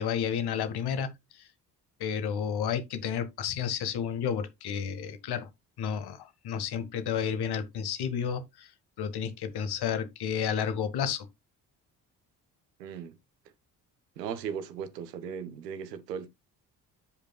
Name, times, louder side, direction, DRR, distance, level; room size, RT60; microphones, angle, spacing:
voice 1, 0.0-1.5 2.0-5.5 5.8-8.7 9.0-11.3, left 7 dB, 50° left, 1.5 m, -31 dB
voice 2, 12.8-13.1 14.2-16.3, right 7 dB, 75° right, 1.0 m, -37 dB
14.0 x 5.2 x 2.2 m
figure-of-eight pair, 45°, 49 cm